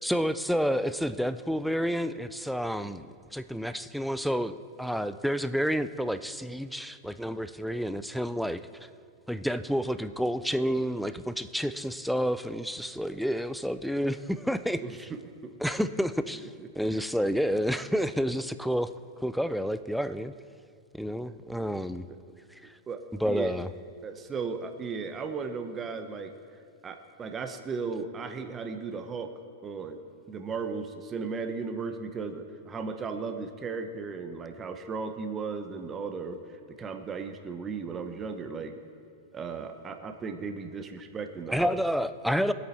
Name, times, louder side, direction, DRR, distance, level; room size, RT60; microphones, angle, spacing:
voice 1, 0.0-3.1 3.3-8.6 9.3-15.1 15.6-16.5 16.8-18.9 19.2-20.3 20.9-22.1 22.6-22.7 23.2-23.7 41.5-42.5, equal, ahead, 12 dB, 0.4 m, -29 dB
voice 2, 14.8-15.5 16.4-17.1 21.2-21.4 22.1-22.3 22.6-23.6 24.0-26.3 26.8-29.3 29.6-30.0 30.3-38.8 39.3-41.8, right 5 dB, 20° right, 7 dB, 0.8 m, -36 dB
20.0 x 8.5 x 4.3 m, 2.4 s
supercardioid pair, 135°, 0 cm